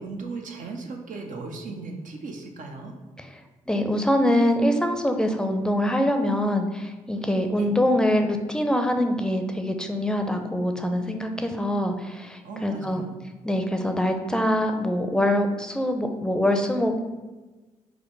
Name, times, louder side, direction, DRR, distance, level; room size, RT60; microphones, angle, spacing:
voice 1, 0.0-2.9 7.6-7.7 12.4-13.2, right 3 dB, 65° right, 2 dB, 0.8 m, -37 dB
voice 2, 3.7-13.0 13.4-17.0, left 1 dB, 5° left, 5 dB, 0.6 m, -24 dB
5.0 x 2.1 x 4.6 m, 1.2 s
supercardioid pair, 50°, 15 cm